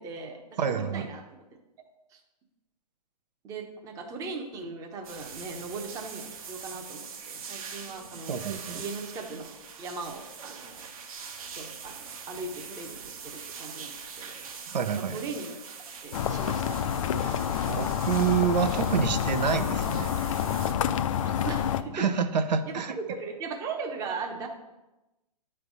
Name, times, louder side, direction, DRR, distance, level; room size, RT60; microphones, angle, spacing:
voice 1, 0.0-1.4 2.1-2.2 3.4-8.4 8.7-10.9 11.6-14.4 14.9-15.6 16.0-16.9 21.2-22.0 22.7-24.5, right 4 dB, 15° right, 3 dB, 0.7 m, -38 dB
voice 2, 0.6-1.1 8.3-8.8 14.7-15.2 17.2-20.1 21.9-23.0, right 7 dB, 85° right, 9 dB, 0.7 m, -28 dB
sound 1, 5.0-20.7, right 6 dB, 55° right, 1.0 m, -43 dB
sound 2, 16.1-21.8, left 9 dB, 50° left, 0.4 m, -28 dB
8.5 x 3.3 x 5.3 m, 1.0 s
hypercardioid pair, 150°, 21 cm